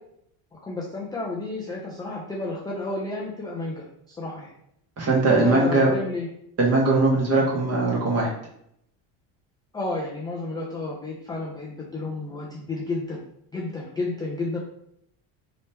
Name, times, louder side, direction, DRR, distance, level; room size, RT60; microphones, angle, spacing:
voice 1, 0.5-4.5 5.4-6.3 9.7-13.2 13.5-14.6, left 2 dB, 10° left, -4 dB, 0.3 m, -31 dB
voice 2, 5.0-5.9 6.6-8.3, right 3 dB, 30° right, -3 dB, 1.3 m, -20 dB
3.1 x 2.9 x 3.3 m, 0.73 s
supercardioid pair, 115°, 50 cm